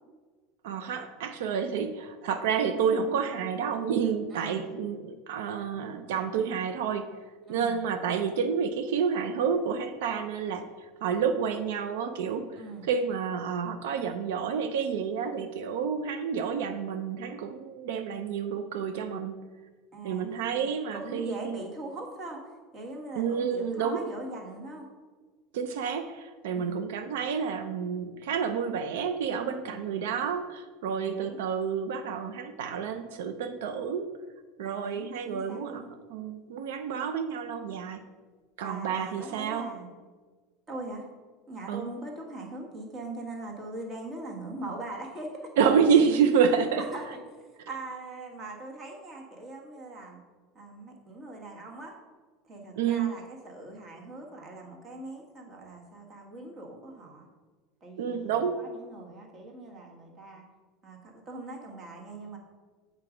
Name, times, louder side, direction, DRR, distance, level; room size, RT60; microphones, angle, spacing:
voice 1, 0.6-7.1 7.5-12.5 12.9-19.4 20.0-21.6 23.2-24.1 25.5-34.1 34.6-35.8 36.1-38.0 38.6-39.7 41.7-41.9 45.6-46.8 52.8-53.1 58.0-58.6, right 6 dB, 80° right, 8 dB, 0.5 m, -29 dB
voice 2, 4.3-4.6 7.5-7.8 12.5-12.9 19.9-20.3 20.6-24.9 26.5-26.8 29.6-30.0 31.0-31.4 34.6-35.9 38.6-39.9 40.7-41.1 41.5-45.5 46.8-50.2 50.5-52.0 52.4-57.3 57.8-60.5 60.8-62.4, right 2 dB, 20° right, 0 dB, 1.4 m, -41 dB
7.7 x 4.6 x 5.0 m, 1.4 s
supercardioid pair, 170°, 0 cm